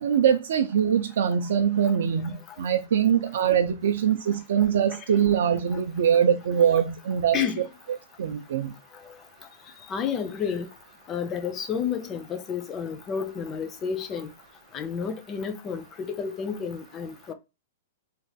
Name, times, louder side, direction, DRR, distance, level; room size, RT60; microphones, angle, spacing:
voice 1, 0.0-7.4 7.9-8.7, right 8 dB, 70° right, 0.3 m, -23 dB
voice 2, 9.9-10.7 11.1-14.3 14.7-17.3, left 7 dB, 20° left, 0.3 m, -30 dB
3.2 x 2.2 x 2.6 m
hypercardioid pair, 160°, 0 cm